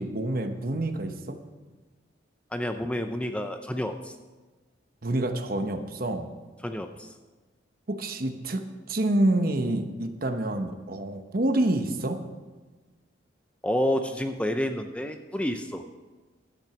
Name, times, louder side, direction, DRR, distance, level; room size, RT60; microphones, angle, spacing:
voice 1, 0.0-1.4 5.0-6.3 7.9-8.6 8.9-12.2, right 1 dB, 50° right, 7 dB, 1.0 m, -27 dB
voice 2, 2.5-4.2 6.6-7.1 13.6-15.8, equal, 5° left, 6 dB, 0.5 m, -29 dB
12.0 x 8.6 x 6.0 m, 1.3 s
head